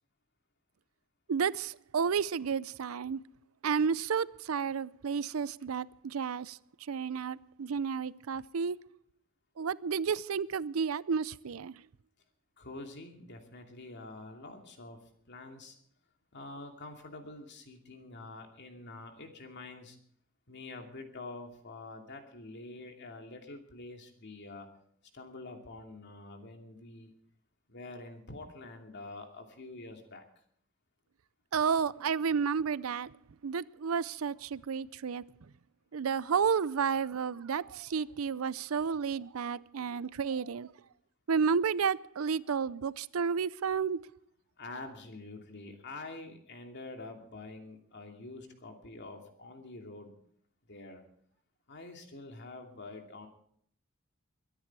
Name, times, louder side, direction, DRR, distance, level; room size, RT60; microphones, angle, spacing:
voice 1, 1.3-3.2 3.6-6.6 6.9-8.8 9.6-11.7 31.5-33.1 33.4-35.2 35.9-40.7 41.3-44.0, right 6 dB, 90° right, 0.5 m, -31 dB
voice 2, 12.6-15.0 15.3-15.8 16.3-20.0 20.5-24.7 25.1-27.1 27.7-30.2 44.6-50.1 50.6-51.0 51.7-53.3, left 2 dB, 55° left, 2.7 m, -46 dB
23.0 x 10.5 x 4.7 m
head